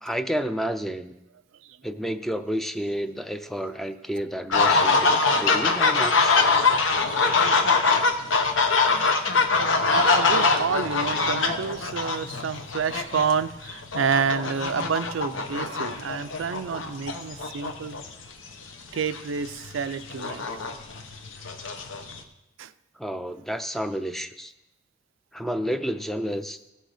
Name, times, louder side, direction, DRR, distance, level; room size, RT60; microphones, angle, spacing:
voice 1, 0.0-1.2 1.8-6.4 23.0-24.5 25.3-26.6, equal, ahead, 9 dB, 0.4 m, -30 dB
sound 1, 4.5-18.3 19.0-19.2 19.5-22.2, left 4 dB, 80° left, 1.0 m, -23 dB
voice 2, 9.0-18.0 18.9-20.5 22.6-22.7, right 6 dB, 80° right, 12 dB, 0.5 m, -29 dB
16.0 x 6.5 x 5.0 m, 0.90 s
head